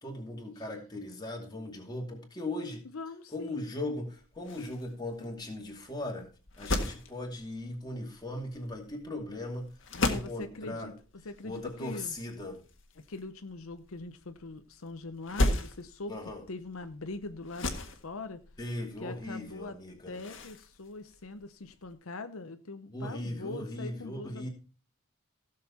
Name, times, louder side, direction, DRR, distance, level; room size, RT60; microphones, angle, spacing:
voice 1, 0.0-2.8 3.3-6.3 6.6-10.9 11.4-12.6 16.1-16.4 18.6-20.2 22.9-24.5, left 1 dB, 20° left, 0 dB, 2.6 m, -38 dB
voice 2, 2.9-3.6 9.9-10.9 11.2-12.2 13.0-16.2 16.5-18.4 19.0-19.8 20.1-24.5, left 3 dB, 80° left, 9 dB, 0.8 m, -42 dB
sound 1, 4.0-21.9, left 2 dB, 60° left, 1.7 m, -38 dB
16.0 x 6.8 x 4.2 m, 0.36 s
head